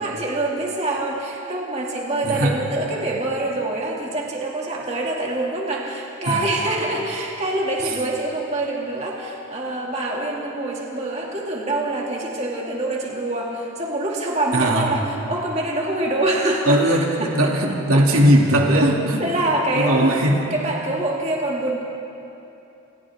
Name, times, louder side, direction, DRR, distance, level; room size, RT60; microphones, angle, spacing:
voice 1, 0.0-17.5 17.9-18.2 18.6-18.8 19.2-20.2 20.5-21.8, right 2 dB, 30° right, -3 dB, 2.6 m, -25 dB
voice 2, 14.5-14.9 16.7-19.2 19.7-20.4, right 1 dB, 85° right, -1 dB, 2.8 m, -18 dB
28.0 x 27.0 x 3.7 m, 2.8 s
head